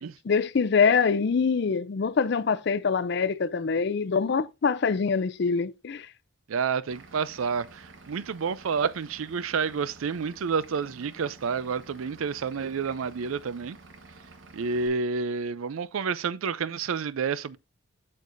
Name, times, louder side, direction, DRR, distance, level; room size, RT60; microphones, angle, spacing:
voice 1, 0.2-6.1, left 5 dB, 55° left, 0.4 m, -24 dB
voice 2, 6.5-13.8 14.5-17.6, right 5 dB, 85° right, 0.4 m, -29 dB
Vehicle / Engine, 6.9-14.9, right 3 dB, 65° right, 1.1 m, -50 dB
8.3 x 6.5 x 2.5 m
head